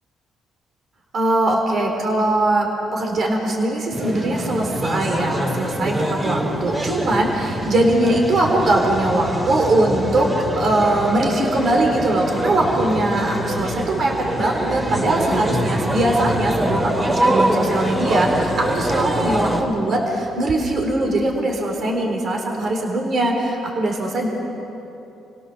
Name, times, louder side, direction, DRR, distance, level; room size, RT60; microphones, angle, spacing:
voice 1, 1.1-10.3 10.6-24.3, right 1 dB, 50° right, 1 dB, 4.1 m, -21 dB
sound 1, 3.9-19.6, right 1 dB, 25° right, 3.8 m, -24 dB
28.5 x 17.5 x 7.0 m, 3.0 s
cardioid pair, 95°, 0 cm